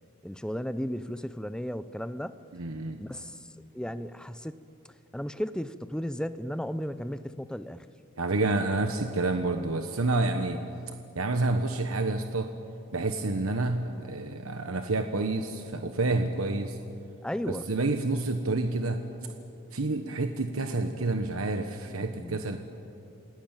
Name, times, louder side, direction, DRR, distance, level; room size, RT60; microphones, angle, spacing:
voice 1, 0.2-2.4 3.0-3.4 3.7-4.6 5.1-7.9 17.2-17.7 22.0-22.5, equal, 5° left, 13 dB, 0.6 m, -35 dB
voice 2, 2.5-3.0 8.2-10.6 11.1-12.5 12.9-16.8 17.5-19.0 19.7-22.6, right 2 dB, 70° right, 6 dB, 1.2 m, -28 dB
28.0 x 18.5 x 9.0 m, 2.7 s
head